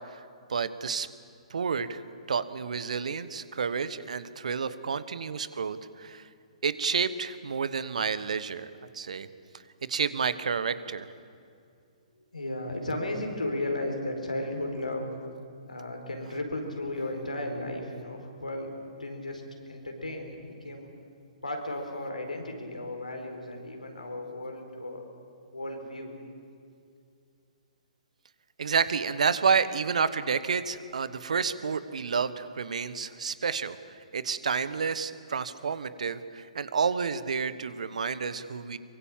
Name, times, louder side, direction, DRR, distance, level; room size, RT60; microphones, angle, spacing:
voice 1, 0.5-1.1 1.5-2.0 2.3-6.3 6.6-9.3 9.9-11.1 28.6-33.8 34.1-38.8, right 5 dB, 65° right, 14 dB, 1.2 m, -30 dB
voice 2, 12.3-15.1 15.7-18.7 19.0-19.4 19.7-20.4 20.6-20.9 21.4-25.0 25.5-26.1, left 1 dB, 85° left, 3 dB, 4.4 m, -34 dB
23.5 x 23.0 x 7.4 m, 2.4 s
figure-of-eight pair, 125°, 4 cm